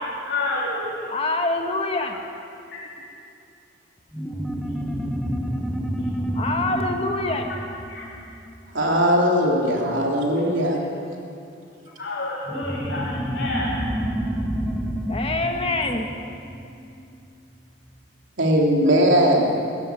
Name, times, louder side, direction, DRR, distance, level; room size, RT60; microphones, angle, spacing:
voice 1, 0.2-1.1 2.7-2.9 7.9-8.1 9.1-9.2 12.0-13.7, left 2 dB, 60° left, -6 dB, 3.7 m, -29 dB
voice 2, 1.1-2.2 6.3-7.5 15.1-16.1, left 2 dB, 30° left, 3 dB, 1.5 m, -25 dB
sound 1, 4.1-9.1 12.5-17.4, equal, 5° left, 1.4 m, -29 dB
voice 3, 8.7-10.8 18.4-19.5, equal, 85° right, -1 dB, 3.3 m, -19 dB
19.5 x 15.5 x 9.3 m, 2.6 s
head